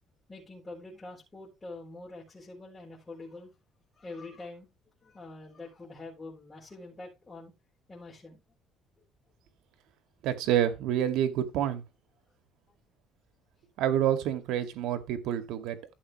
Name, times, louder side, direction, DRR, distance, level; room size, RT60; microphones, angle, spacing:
voice 1, 0.3-3.5 3.9-4.7 5.0-7.5 7.9-8.4 14.8-14.9, left 2 dB, 15° left, 5.8 m, -45 dB
voice 2, 10.2-11.8 13.8-15.9, right 10 dB, 80° right, 2.2 m, -28 dB
14.0 x 7.4 x 3.2 m
cardioid pair, 160°, 0 cm